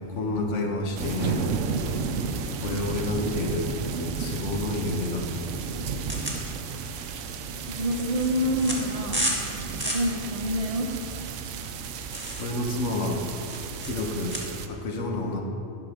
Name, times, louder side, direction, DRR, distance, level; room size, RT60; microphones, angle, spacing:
voice 1, 0.0-3.7 4.2-5.3 12.4-13.2 13.8-15.4, left 2 dB, 75° left, 1 dB, 1.4 m, -30 dB
sound 1, 1.0-14.7, right 5 dB, 80° right, 0.9 m, -33 dB
sound 2, 6.1-14.4, equal, 10° right, 1.6 m, -34 dB
voice 2, 7.7-10.9, equal, 35° right, 0 dB, 0.8 m, -28 dB
11.5 x 5.3 x 6.3 m, 2.8 s
omnidirectional pair, 1.3 m